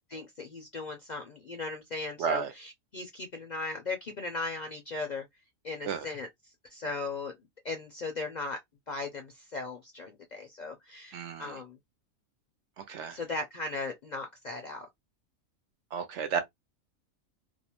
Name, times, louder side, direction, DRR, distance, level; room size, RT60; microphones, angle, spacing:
voice 1, 0.0-5.2 5.6-6.3 6.7-7.3 7.6-8.6 8.9-11.8 13.1-14.9, left 3 dB, 50° left, 0.5 m, -37 dB
voice 2, 2.2-2.5 5.9-6.1 11.1-11.6 12.8-13.2 15.9-16.4, right 7 dB, 70° right, 0.8 m, -32 dB
2.5 x 2.0 x 2.8 m
omnidirectional pair, 1.4 m